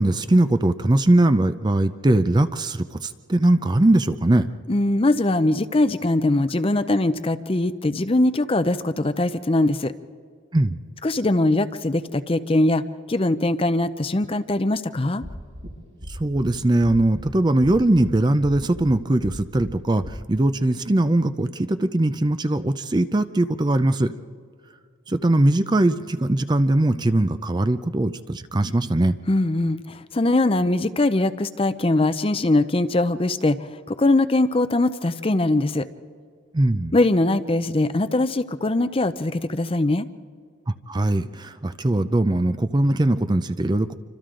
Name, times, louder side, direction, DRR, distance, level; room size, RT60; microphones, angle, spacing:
voice 1, 0.0-4.5 10.5-10.8 16.1-24.1 25.1-29.2 36.5-37.0 40.7-44.0, right 1 dB, 20° right, 11 dB, 0.5 m, -20 dB
voice 2, 4.7-9.9 11.0-12.8 13.1-15.3 29.3-35.9 36.9-40.1, left 2 dB, 30° left, 12 dB, 0.6 m, -21 dB
sound 1, 15.2-15.7 16.0-16.5 16.8-17.3 17.6-18.1 18.4-18.9 19.2-19.7 20.0-20.1, equal, 75° right, 5.4 m, -37 dB
28.0 x 25.5 x 3.8 m, 2.1 s
head